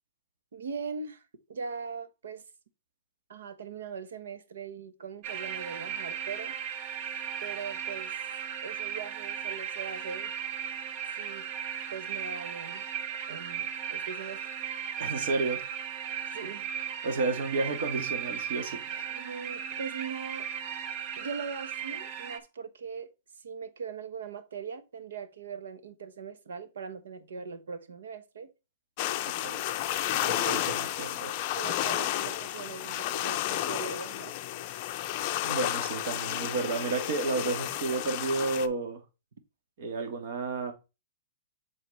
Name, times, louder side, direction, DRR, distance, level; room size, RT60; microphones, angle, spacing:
voice 1, 0.5-1.2 1.5-2.4 3.3-6.6 7.4-8.2 8.6-10.3 11.2-11.4 11.9-12.8 13.3-14.4 16.3-16.7 19.1-20.5 21.2-23.1 23.4-28.5 30.2-30.6 31.4-34.4, right 6 dB, 85° right, 1.1 m, -40 dB
sound 1, 5.2-22.4, right 8 dB, 30° right, 0.7 m, -36 dB
voice 2, 15.0-15.6 17.0-19.1 29.3-29.6 30.1-31.3 35.3-39.0 39.8-40.7, right 3 dB, 50° right, 1.6 m, -32 dB
sound 2, 29.0-38.7, left 13 dB, 35° left, 0.5 m, -32 dB
7.9 x 4.2 x 3.2 m
hypercardioid pair, 165°, 0 cm